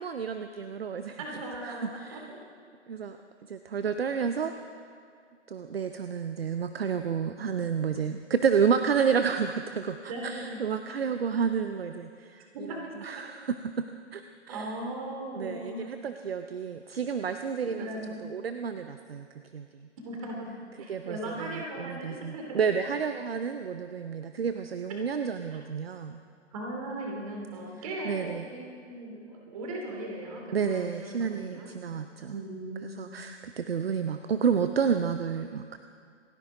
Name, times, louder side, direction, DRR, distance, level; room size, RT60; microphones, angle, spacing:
voice 1, 0.0-2.3 2.9-3.2 3.5-4.5 5.5-14.8 15.3-17.9 18.2-19.3 19.5-19.9 20.9-26.2 28.0-28.5 30.5-32.4 33.0-35.8, right 6 dB, 55° right, 8 dB, 0.7 m, -30 dB
voice 2, 1.2-2.4 10.1-10.6 12.5-13.2 14.5-15.9 17.7-18.2 20.0-20.5 20.8-22.6 26.5-31.7 32.3-33.0, right 1 dB, 30° right, 0 dB, 2.9 m, -38 dB
27.5 x 10.0 x 3.8 m, 2.2 s
figure-of-eight pair, 140°, 35 cm